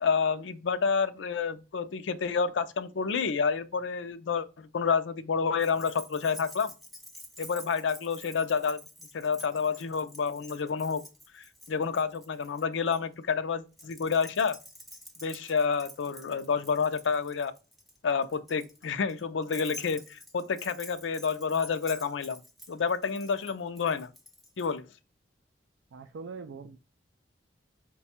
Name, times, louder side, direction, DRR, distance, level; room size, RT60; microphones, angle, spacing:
voice 1, 0.0-6.7 7.4-8.8 9.1-11.0 11.3-14.6 15.2-17.5 18.0-22.4 22.7-24.1 24.6-24.8, left 5 dB, 80° left, 0.5 m, -29 dB
Keys jangling, 5.6-13.0 13.7-24.7, left 1 dB, ahead, 0.5 m, -49 dB
voice 2, 25.9-26.8, right 4 dB, 85° right, 0.4 m, -42 dB
4.9 x 2.3 x 4.2 m
head